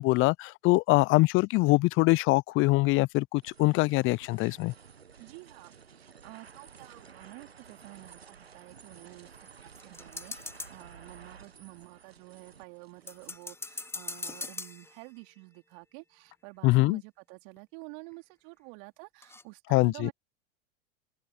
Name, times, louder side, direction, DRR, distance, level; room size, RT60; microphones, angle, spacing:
voice 1, 0.0-4.7 16.6-17.0 19.7-20.1, left 22 dB, 40° left, 0.7 m, -23 dB
sound 1, 3.4-13.4, right 6 dB, 90° right, 1.6 m, -53 dB
voice 2, 5.2-20.1, right 36 dB, 55° right, 4.2 m, -49 dB
sound 2, 9.3-11.0 13.1-15.4 17.6-17.7 18.1-18.2 19.2-19.4, left 3 dB, 10° left, 1.2 m, -41 dB
open air
hypercardioid pair, 85°, 30 cm